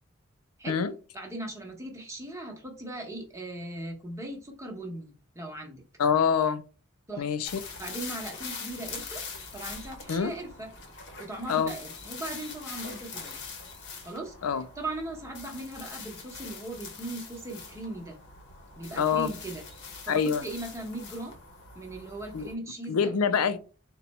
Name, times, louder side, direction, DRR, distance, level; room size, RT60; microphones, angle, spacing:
voice 1, 1.1-5.8 7.1-7.4 7.8-9.2 9.5-10.7 11.2-13.4 14.0-14.3 14.8-18.2 18.8-19.6 20.1-21.4 21.7-23.1, right 2 dB, 15° right, 1.0 m, -38 dB
voice 2, 6.0-6.6 7.2-7.5 10.1-10.3 11.5-11.7 14.4-14.6 19.0-19.3 20.1-20.4 22.3-22.5 22.9-23.6, left 6 dB, 85° left, 0.4 m, -25 dB
sound 1, 7.4-22.5, left 5 dB, 55° left, 0.9 m, -43 dB
4.1 x 2.3 x 4.1 m
head